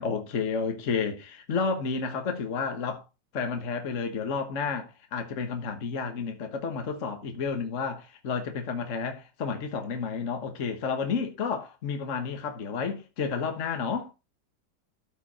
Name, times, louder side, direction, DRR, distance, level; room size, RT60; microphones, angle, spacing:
voice 1, 0.0-3.0 3.3-14.1, left 5 dB, 45° left, 1.6 m, -31 dB
13.0 x 5.6 x 4.2 m
omnidirectional pair, 1.9 m